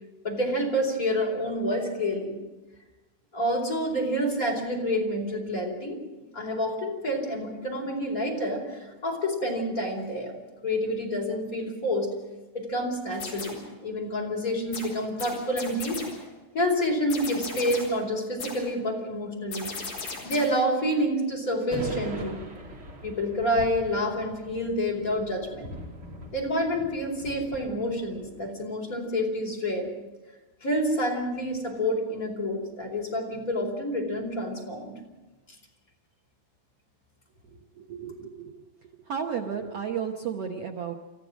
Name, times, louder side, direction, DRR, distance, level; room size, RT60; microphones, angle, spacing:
voice 1, 0.2-2.4 3.3-6.0 6.3-12.1 12.5-16.0 16.5-19.7 20.2-22.4 23.0-25.7 26.3-29.9 30.6-34.9, equal, 20° left, 0 dB, 4.5 m, -28 dB
sound 1, 13.1-13.7 14.7-16.3 17.1-18.1 18.4-18.8 19.5-20.7, left 4 dB, 50° left, 5.4 m, -37 dB
sound 2, 21.7-28.5, equal, 35° right, 3.1 m, -41 dB
voice 2, 37.5-38.6 39.1-40.9, right 7 dB, 80° right, 2 dB, 1.3 m, -33 dB
29.5 x 14.5 x 6.3 m, 1.1 s
omnidirectional pair, 4.6 m